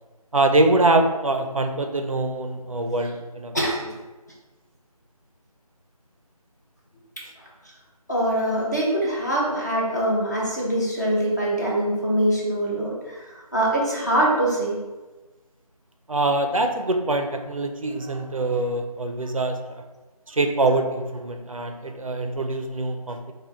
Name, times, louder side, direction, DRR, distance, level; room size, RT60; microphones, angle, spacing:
voice 1, 0.3-3.6 16.1-19.8 20.3-23.3, right 2 dB, 60° right, 5 dB, 0.4 m, -24 dB
voice 2, 8.1-14.8, right 1 dB, 30° left, -5 dB, 0.7 m, -23 dB
5.1 x 2.2 x 2.9 m, 1.2 s
figure-of-eight pair, 180°, 20 cm